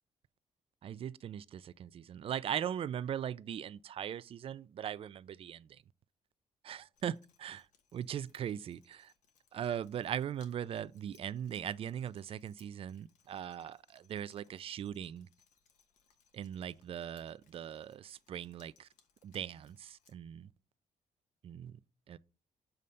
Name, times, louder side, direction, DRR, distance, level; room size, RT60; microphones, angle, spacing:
voice 1, 0.8-5.8 6.6-9.1 9.5-15.3 16.3-18.9 19.2-20.5 21.4-21.8 22.1-22.2, right 9 dB, 50° right, 0.3 m, -40 dB
Drip, 6.9-20.1, left 7 dB, 85° left, 1.2 m, -71 dB
7.0 x 3.2 x 5.2 m
cardioid pair, 95°, 13 cm